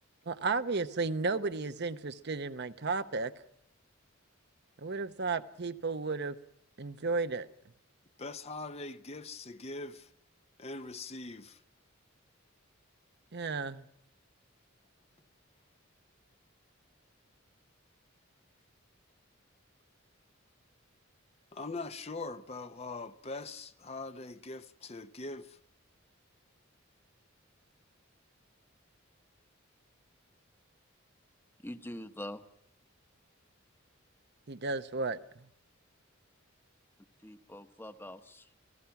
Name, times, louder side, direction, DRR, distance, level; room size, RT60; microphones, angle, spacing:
voice 1, 0.3-3.4 4.8-6.4 6.8-7.5 13.3-13.8 34.5-35.5, right 4 dB, 55° right, 0.8 m, -33 dB
voice 2, 8.2-10.1 10.6-11.6 21.5-25.6, left 3 dB, 30° left, 0.8 m, -42 dB
voice 3, 31.6-32.4 37.2-38.5, left 1 dB, 10° left, 1.1 m, -44 dB
30.0 x 17.5 x 5.9 m
head